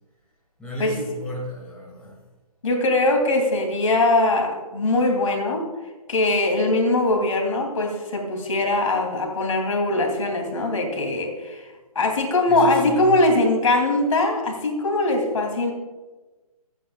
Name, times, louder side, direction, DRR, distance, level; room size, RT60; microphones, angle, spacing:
voice 1, 0.6-2.2 12.5-13.2, equal, 5° left, -6 dB, 2.2 m, -33 dB
voice 2, 2.6-5.6 6.1-11.7 11.9-15.7, left 2 dB, 55° left, 3 dB, 2.8 m, -21 dB
23.5 x 9.3 x 2.3 m, 1.2 s
figure-of-eight pair, 150°, 20 cm